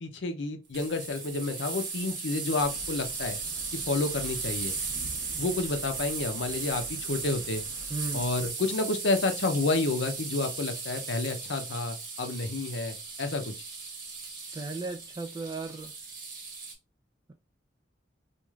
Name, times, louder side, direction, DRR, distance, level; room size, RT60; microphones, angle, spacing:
voice 1, 0.0-3.4 3.9-4.7 5.4-7.6 8.1-13.5, left 3 dB, 70° left, 0.6 m, -30 dB
sound 1, 0.7-16.7, right 4 dB, 50° right, 1.1 m, -37 dB
sound 2, 2.6-8.5, right 1 dB, 75° right, 0.7 m, -47 dB
voice 2, 7.9-8.3 14.5-15.9, right 3 dB, 20° right, 0.3 m, -35 dB
3.1 x 2.4 x 2.3 m
head